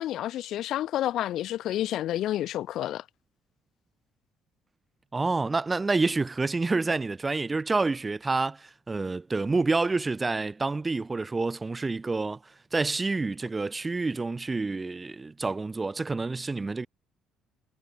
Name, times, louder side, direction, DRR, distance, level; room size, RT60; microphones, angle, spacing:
voice 1, 0.0-3.0, left 13 dB, 65° left, 0.7 m, -29 dB
voice 2, 5.1-12.4 12.7-16.9, right 3 dB, 25° right, 2.1 m, -28 dB
supercardioid pair, 65°, 0 cm